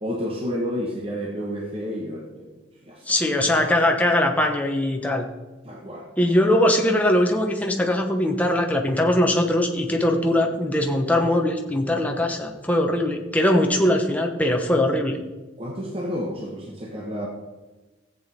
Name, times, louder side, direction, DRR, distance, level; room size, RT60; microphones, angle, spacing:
voice 1, 0.0-2.5 2.8-3.2 5.6-6.1 15.6-17.3, equal, 30° right, -1 dB, 1.1 m, -30 dB
voice 2, 3.1-5.3 6.2-15.2, left 1 dB, 10° left, 2 dB, 1.1 m, -21 dB
14.0 x 8.1 x 4.3 m, 1.2 s
head